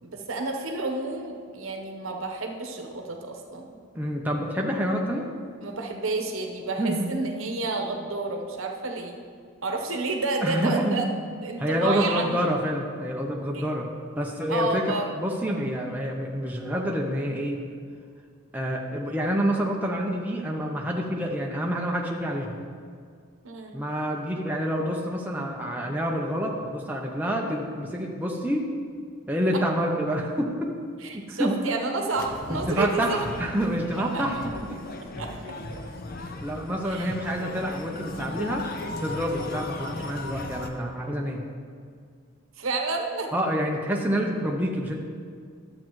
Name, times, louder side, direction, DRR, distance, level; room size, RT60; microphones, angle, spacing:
voice 1, 0.0-3.7 5.6-9.2 9.6-11.1 11.4-12.4 13.5-13.6 14.5-15.1 23.4-23.8 29.5-29.6 31.0-33.2 34.0-34.2 35.2-35.3 35.7-35.8 36.8-37.1 42.6-43.3, right 3 dB, 70° right, 2 dB, 0.9 m, -30 dB
voice 2, 3.9-5.3 6.8-7.1 10.4-11.1 11.6-13.9 14.2-14.8 15.2-17.6 18.5-22.6 23.7-28.7 29.3-30.7 31.1-31.5 32.5-34.4 34.7-34.8 36.4-38.7 39.0-41.4 43.3-45.0, equal, 10° right, -1 dB, 0.6 m, -27 dB
sound 1, 32.2-40.7, left 2 dB, 45° left, 0.6 m, -37 dB
11.5 x 7.5 x 3.1 m, 2.1 s
head